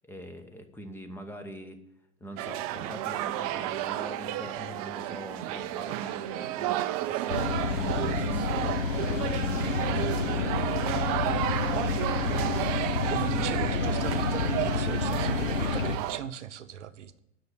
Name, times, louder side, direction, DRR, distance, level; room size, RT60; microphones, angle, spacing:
voice 1, 0.0-1.8 2.2-10.8, equal, 5° left, 7 dB, 0.9 m, -43 dB
sound 1, 2.4-16.2, right 13 dB, 30° right, 0.5 m, -32 dB
sound 2, 7.3-16.0, left 5 dB, 75° left, 0.9 m, -29 dB
voice 2, 12.8-17.2, right 9 dB, 65° right, 11 dB, 0.8 m, -38 dB
9.4 x 6.4 x 8.5 m, 0.80 s
figure-of-eight pair, 105°, 38 cm